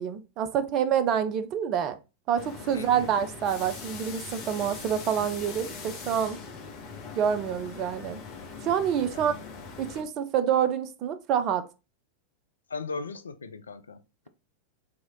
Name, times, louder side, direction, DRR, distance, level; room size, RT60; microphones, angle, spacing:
voice 1, 0.0-2.0 2.3-6.4 7.1-8.2 8.6-9.3 9.8-11.6, right 8 dB, 35° right, 0.4 m, -27 dB
sound 1, 2.4-10.0, left 5 dB, 35° left, 0.9 m, -41 dB
voice 2, 2.7-3.1 9.1-9.3 12.7-14.0, left 4 dB, 70° left, 0.3 m, -37 dB
3.0 x 2.8 x 3.5 m
figure-of-eight pair, 90°, 0 cm